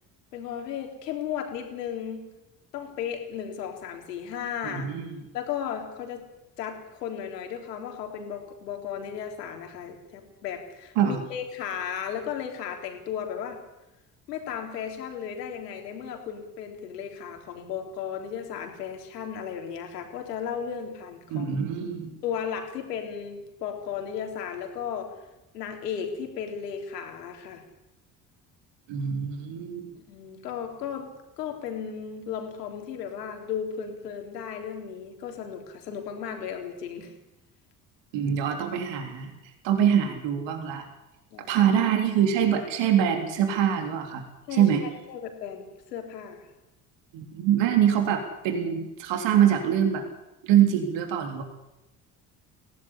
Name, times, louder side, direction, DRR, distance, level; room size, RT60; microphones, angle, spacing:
voice 1, 0.3-2.3 2.7-5.0 5.3-6.2 6.6-13.6 14.3-21.5 22.2-25.1 25.5-27.6 29.9-37.1 41.3-41.6 44.5-46.5, left 8 dB, 80° left, 4 dB, 3.8 m, -35 dB
voice 2, 4.6-5.2 11.0-11.2 21.3-22.1 28.9-29.9 38.1-39.3 39.6-40.8 41.5-44.2 44.5-44.8 47.1-50.0 50.4-51.4, right 9 dB, 65° right, 5 dB, 3.6 m, -24 dB
22.0 x 17.5 x 10.0 m, 0.96 s
hypercardioid pair, 55°, 47 cm